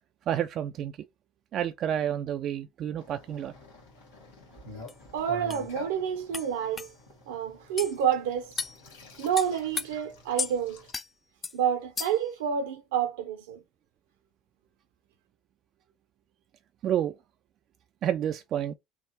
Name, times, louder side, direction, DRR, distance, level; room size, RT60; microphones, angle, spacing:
voice 1, 0.3-0.9 1.5-3.5 16.8-17.1 18.0-18.7, right 10 dB, 50° right, 0.4 m, -29 dB
sound 1, 3.0-10.9, left 2 dB, 80° left, 1.7 m, -48 dB
sound 2, 4.9-5.0 5.5-5.6 6.3-6.5 6.8-6.9 7.8-7.9 8.6-8.8 9.4-9.9 10.4-10.5 10.9-11.1 11.4-11.6 12.0-12.3, left 5 dB, 30° left, 0.3 m, -33 dB
voice 2, 5.1-6.9 7.3-8.5 9.2-10.8 11.5-13.6, right 8 dB, 80° right, 0.7 m, -29 dB
3.5 x 2.1 x 4.0 m
hypercardioid pair, 70°, 0 cm